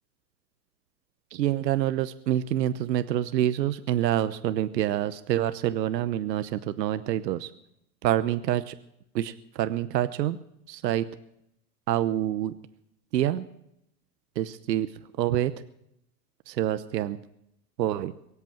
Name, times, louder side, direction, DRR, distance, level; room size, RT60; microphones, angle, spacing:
voice 1, 1.3-7.5 8.0-8.8 9.1-10.4 10.7-11.1 11.9-12.5 13.1-13.5 14.4-14.9 15.2-15.5 16.5-17.2 17.8-18.1, right 12 dB, 85° right, 12 dB, 1.0 m, -27 dB
23.0 x 8.2 x 7.5 m, 0.78 s
hypercardioid pair, 120°, 49 cm